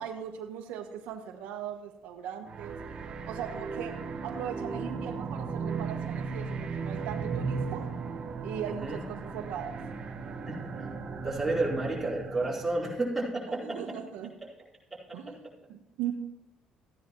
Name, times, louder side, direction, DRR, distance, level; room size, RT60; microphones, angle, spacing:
voice 1, 0.0-2.8 3.2-7.9 8.4-9.8 13.6-14.3 15.1-16.1, right 9 dB, 80° right, 4 dB, 1.2 m, -39 dB
sound 1, 2.5-13.0, right 5 dB, 40° right, 1.2 m, -36 dB
voice 2, 8.7-9.0 10.5-10.9 11.2-13.8 15.1-15.2, right 2 dB, 5° right, -7 dB, 4.5 m, -31 dB
15.0 x 9.9 x 3.1 m, 0.91 s
cardioid pair, 130°, 2 cm